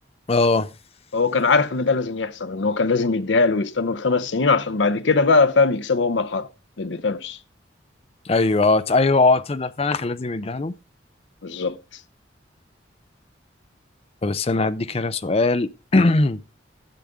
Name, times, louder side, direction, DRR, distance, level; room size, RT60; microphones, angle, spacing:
voice 1, 0.3-0.7 8.3-10.7 14.2-16.4, left 3 dB, 30° left, 0.5 m, -20 dB
voice 2, 1.1-6.5 6.8-7.4 11.4-11.8, left 4 dB, 75° left, 0.7 m, -21 dB
11.5 x 7.9 x 3.5 m
head